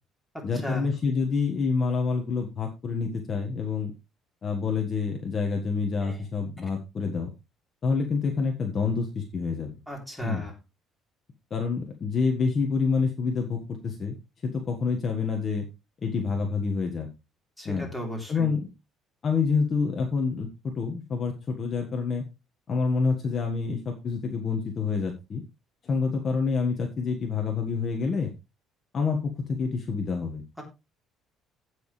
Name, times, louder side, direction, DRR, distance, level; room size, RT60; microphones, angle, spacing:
voice 1, 0.4-3.9 4.4-7.3 7.8-9.7 10.2-10.5 11.5-14.1 14.4-15.6 16.0-17.1 17.6-17.9 18.3-18.7 19.2-22.2 22.7-25.4 25.8-28.3 28.9-30.4, left 5 dB, 30° left, 3 dB, 1.6 m, -27 dB
voice 2, 9.9-10.5 17.6-18.5 30.6-30.7, equal, ahead, 0 dB, 3.6 m, -35 dB
16.0 x 6.4 x 3.3 m, 0.25 s
cardioid pair, 175°, 0 cm